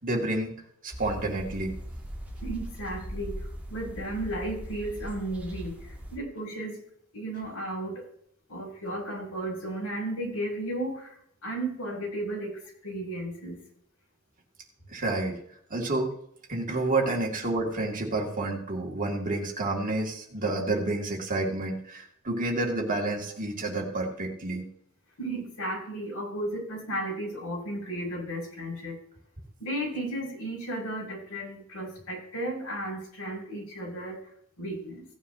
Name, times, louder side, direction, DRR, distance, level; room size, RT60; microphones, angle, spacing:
voice 1, 0.0-0.6 0.8-1.8 14.9-15.4 15.7-16.1 16.5-24.7, right 2 dB, 40° right, 0 dB, 2.2 m, -29 dB
sound 1, 0.9-6.2, equal, 5° right, 2.2 m, -39 dB
voice 2, 2.4-6.8 7.1-8.0 8.5-13.6 25.2-29.0 29.6-35.1, right 1 dB, 80° left, -3 dB, 5.8 m, -34 dB
17.0 x 9.5 x 2.8 m, 0.67 s
head